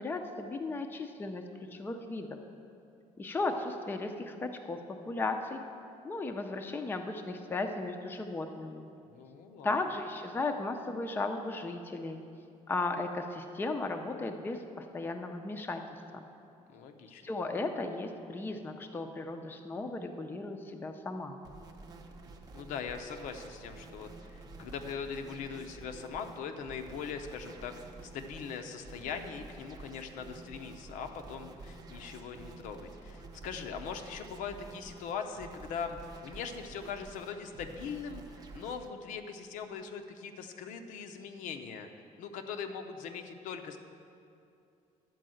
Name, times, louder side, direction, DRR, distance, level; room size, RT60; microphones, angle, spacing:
voice 1, 0.0-1.4 1.7-2.4 3.2-4.8 5.1-5.6 6.0-8.9 9.6-12.2 12.7-15.8 16.1-16.3 17.2-21.4, left 3 dB, 15° left, 5 dB, 0.5 m, -35 dB
voice 2, 9.0-9.8 16.7-17.2 22.5-27.7 28.0-41.9 42.2-43.8, left 6 dB, 85° left, 5 dB, 0.7 m, -41 dB
sound 1, 21.4-38.9, right 3 dB, 30° right, 0.7 m, -50 dB
11.0 x 4.7 x 7.7 m, 2.6 s
cardioid pair, 155°, 13 cm